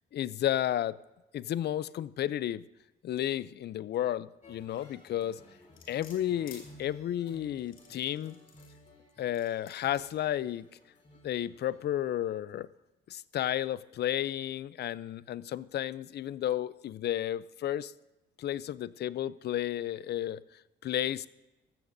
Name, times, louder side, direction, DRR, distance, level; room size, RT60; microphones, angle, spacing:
voice 1, 0.1-1.0 1.3-2.6 3.0-5.4 5.9-8.4 9.2-10.7 11.2-12.7 13.1-17.9 18.4-21.3, left 12 dB, 55° left, 19 dB, 0.4 m, -32 dB
sound 1, 4.4-11.8, equal, 35° left, 3.3 m, -56 dB
sound 2, 5.8-6.6 7.6-8.8 9.3-10.1 10.7-10.8, left 6 dB, 90° left, 2.7 m, -52 dB
15.0 x 13.0 x 2.6 m, 1.0 s
cardioid pair, 90°, 20 cm